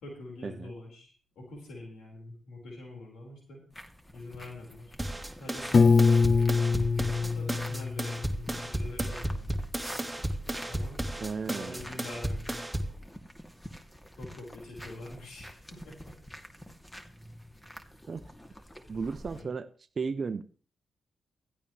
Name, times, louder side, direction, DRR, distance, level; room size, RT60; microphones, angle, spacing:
voice 1, 0.0-3.6 4.1-5.0 5.4-6.5 7.0-9.8 10.6-11.0 11.4-12.6 14.2-16.2 18.5-18.9 19.3-19.5, left 2 dB, 75° left, 4.9 m, -45 dB
sound 1, 3.7-19.4, equal, 15° left, 2.7 m, -48 dB
sound 2, 5.0-13.0, right 1 dB, 5° right, 2.6 m, -34 dB
Piano, 5.7-8.7, left 4 dB, 50° left, 0.6 m, -24 dB
voice 2, 11.2-12.0 18.1-18.2 18.9-19.7 20.0-20.4, right 5 dB, 50° right, 0.7 m, -34 dB
16.0 x 13.5 x 3.3 m
hypercardioid pair, 45°, 0 cm